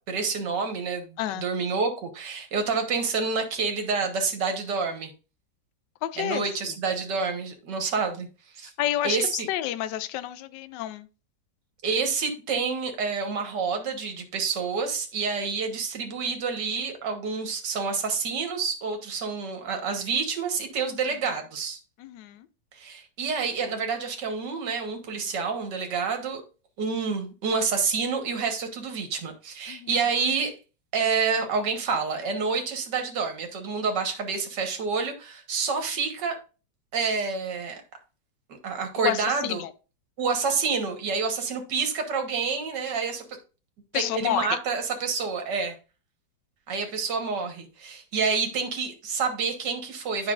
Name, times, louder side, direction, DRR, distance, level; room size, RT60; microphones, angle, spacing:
voice 1, 0.1-5.1 6.2-8.3 8.5-8.7 9.0-9.5 11.8-21.8 22.7-26.4 26.8-30.6 30.9-36.4 36.9-37.8 38.6-39.6 40.2-43.3 43.9-45.8 46.7-50.3, right 5 dB, 65° right, 1.9 m, -28 dB
voice 2, 6.0-6.4 8.8-11.1 22.0-22.5 29.7-29.9 39.0-39.7 43.9-44.5, left 13 dB, 75° left, 1.2 m, -29 dB
9.8 x 5.6 x 2.5 m
omnidirectional pair, 2.1 m